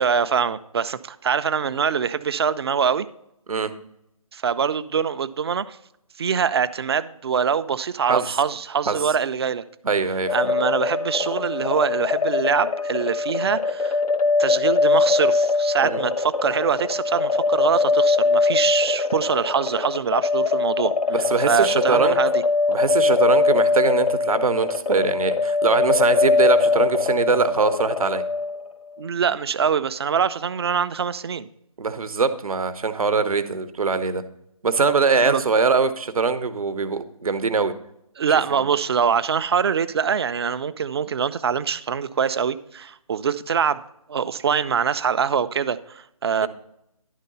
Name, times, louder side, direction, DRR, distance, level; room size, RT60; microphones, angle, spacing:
voice 1, 0.0-3.1 4.3-5.8 6.2-9.6 10.3-14.0 14.4-20.9 21.5-22.3 29.0-31.5 35.2-35.4 38.2-43.8 44.1-46.5, right 7 dB, 45° right, 14 dB, 0.4 m, -24 dB
voice 2, 9.8-10.5 15.8-16.0 21.1-22.2 22.7-28.2 31.8-34.2 34.6-37.7 38.5-38.6, right 4 dB, 75° right, 12 dB, 0.8 m, -22 dB
sound 1, 10.3-28.7, left 4 dB, 85° left, 0.8 m, -22 dB
11.0 x 3.8 x 5.4 m, 0.80 s
figure-of-eight pair, 155°, 19 cm